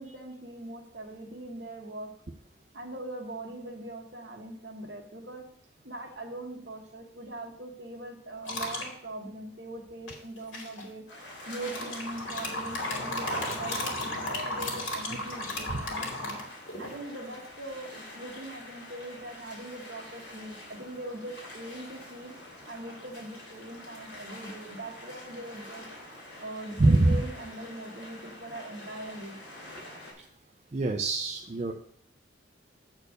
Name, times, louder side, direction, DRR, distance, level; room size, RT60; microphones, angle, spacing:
voice 1, 0.0-2.1 2.7-5.4 5.8-11.0 11.4-16.4 16.8-22.3 22.7-25.9 26.4-29.4, right 1 dB, 55° right, 1 dB, 1.5 m, -41 dB
sound 1, 8.5-8.9 10.1-10.8 11.6-17.0, left 1 dB, 85° left, 2.2 m, -34 dB
sound 2, 11.1-30.1, left 1 dB, 60° left, 3.2 m, -46 dB
voice 2, 26.8-27.2 30.2-30.3 30.7-31.7, right 2 dB, 35° right, 2 dB, 0.4 m, -24 dB
8.0 x 4.5 x 6.4 m, 0.65 s
head